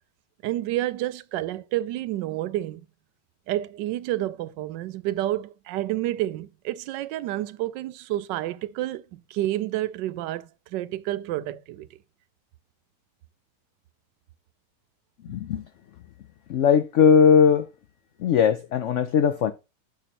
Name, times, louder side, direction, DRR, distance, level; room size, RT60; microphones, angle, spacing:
voice 1, 0.4-2.8 3.5-11.9, right 14 dB, 90° right, 1.2 m, -29 dB
voice 2, 15.2-15.6 16.5-17.7 18.2-19.5, left 7 dB, 90° left, 0.6 m, -19 dB
11.0 x 6.7 x 3.0 m
omnidirectional pair, 1.9 m